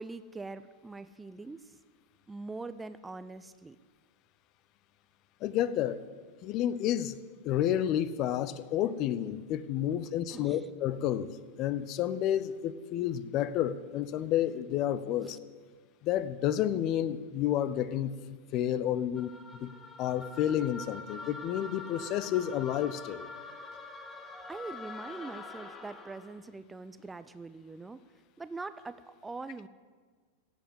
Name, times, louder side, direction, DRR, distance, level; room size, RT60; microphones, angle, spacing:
voice 1, 0.0-1.6 2.3-3.8 10.0-10.7 15.2-15.4 24.5-28.0 28.4-29.7, right 3 dB, 10° right, 13 dB, 0.5 m, -43 dB
voice 2, 5.4-6.0 6.4-7.2 7.4-11.3 11.6-15.4 16.0-18.1 18.5-19.3 19.6-19.7 20.0-23.3, left 11 dB, 40° left, 16 dB, 0.7 m, -30 dB
sound 1, 19.1-26.4, left 3 dB, 15° left, 1.7 m, -45 dB
16.5 x 7.9 x 8.2 m, 1.5 s
figure-of-eight pair, 90°, 0 cm